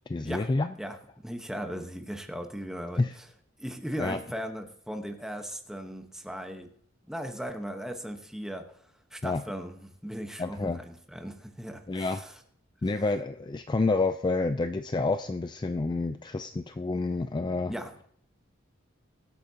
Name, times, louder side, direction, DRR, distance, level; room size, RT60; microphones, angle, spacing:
voice 1, 0.1-0.7 3.0-3.1 4.0-4.2 9.2-9.4 10.4-10.8 11.9-12.2 12.8-17.7, left 3 dB, 20° left, 9 dB, 0.4 m, -29 dB
voice 2, 1.2-3.2 3.6-6.7 7.1-8.7 9.1-12.3 17.7-17.9, equal, 5° right, 5 dB, 1.1 m, -37 dB
22.0 x 8.5 x 2.9 m, 0.66 s
head